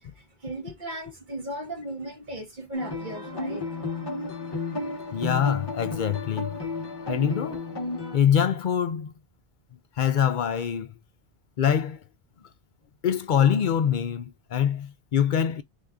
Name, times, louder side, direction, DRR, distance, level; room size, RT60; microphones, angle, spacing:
voice 1, 0.0-3.7, right 1 dB, 45° right, 1.6 m, -37 dB
sound 1, 2.7-8.2, left 3 dB, 25° left, 0.9 m, -32 dB
voice 2, 5.1-6.6 7.1-7.6 8.1-9.1 10.0-10.9 11.6-12.0 13.0-15.6, left 8 dB, 60° left, 0.6 m, -24 dB
3.6 x 2.7 x 3.5 m
omnidirectional pair, 1.1 m